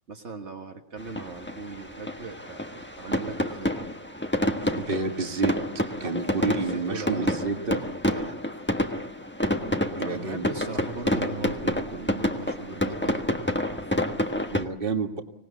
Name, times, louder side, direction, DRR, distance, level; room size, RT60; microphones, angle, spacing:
voice 1, 0.1-3.8 6.6-7.4 9.6-13.9, right 4 dB, 65° right, 3 dB, 1.8 m, -38 dB
sound 1, 1.0-14.6, left 1 dB, 10° left, 1.3 m, -28 dB
voice 2, 4.7-5.5 6.0-8.4 10.0-10.5 14.5-15.2, right 4 dB, 45° right, 5 dB, 1.9 m, -30 dB
25.5 x 18.5 x 8.3 m, 0.78 s
omnidirectional pair, 1.3 m